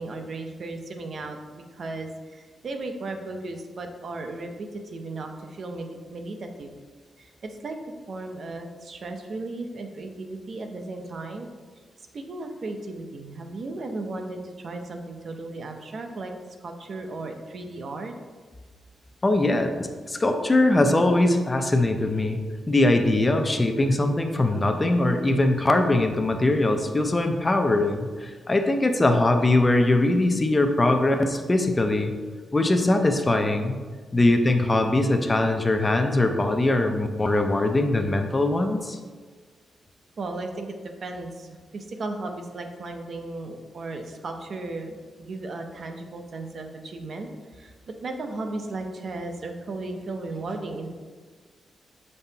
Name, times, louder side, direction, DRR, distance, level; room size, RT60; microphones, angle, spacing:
voice 1, 0.0-6.7 7.2-11.5 12.0-16.3 16.6-18.1 34.1-34.3 40.2-50.9, right 2 dB, 55° right, 5 dB, 0.6 m, -35 dB
voice 2, 19.2-22.4 22.7-32.1 32.5-33.8 34.1-39.0, left 2 dB, 20° left, 5 dB, 0.5 m, -21 dB
6.8 x 5.3 x 2.8 m, 1.5 s
wide cardioid pair, 125°, 0 cm